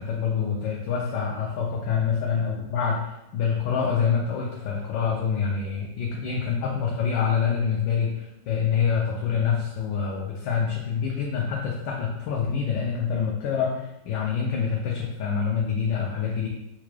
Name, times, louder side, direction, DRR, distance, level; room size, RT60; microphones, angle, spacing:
voice 1, 0.0-3.0 3.3-16.5, left 6 dB, 80° left, -2 dB, 1.3 m, -26 dB
4.6 x 2.2 x 3.1 m, 0.89 s
omnidirectional pair, 2.0 m